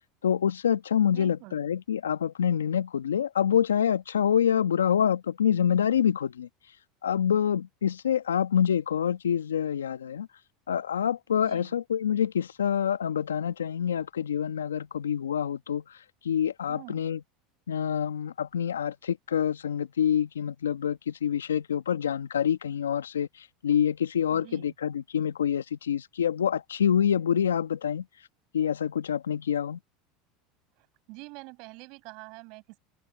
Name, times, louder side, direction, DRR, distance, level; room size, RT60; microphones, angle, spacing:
voice 1, 0.2-6.5 7.0-10.3 10.7-15.8 16.2-17.2 17.7-28.0 28.5-29.8, left 8 dB, 85° left, 1.3 m, -26 dB
voice 2, 1.1-1.7 11.4-11.8 16.7-17.1 24.3-24.7 30.8-32.8, right 28 dB, 60° right, 7.5 m, -46 dB
hypercardioid pair, 85°, 0 cm